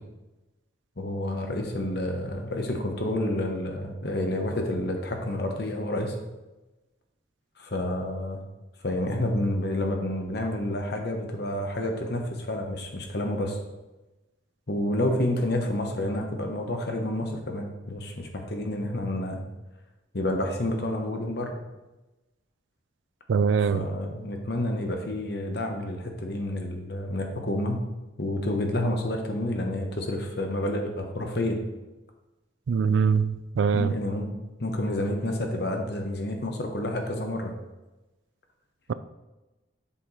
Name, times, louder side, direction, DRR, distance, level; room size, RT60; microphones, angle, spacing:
voice 1, 1.0-6.2 7.6-8.4 8.8-13.6 14.7-19.4 20.1-21.6 23.7-27.8 28.2-31.6 33.7-34.3 34.6-37.5, left 1 dB, 55° left, 3 dB, 1.0 m, -29 dB
voice 2, 23.3-23.9 32.7-33.9, right 6 dB, 70° right, 14 dB, 0.3 m, -23 dB
7.2 x 4.4 x 4.1 m, 1.1 s
head